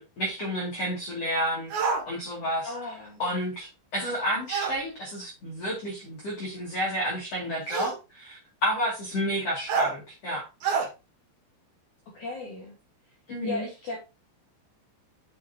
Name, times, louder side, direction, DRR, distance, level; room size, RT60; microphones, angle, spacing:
voice 1, 0.0-2.7 3.2-10.5 13.3-13.7, equal, 40° left, -4 dB, 2.7 m, -30 dB
sound 1, 1.7-2.0 4.5-4.8 6.0-6.1 7.7-8.0 9.7-9.9 10.6-10.9, right 5 dB, 60° right, 3.2 m, -27 dB
voice 2, 2.6-3.2 12.1-12.8 13.4-14.0, left 2 dB, 65° left, -2 dB, 2.0 m, -35 dB
7.6 x 7.1 x 2.9 m, 0.28 s
omnidirectional pair, 5.9 m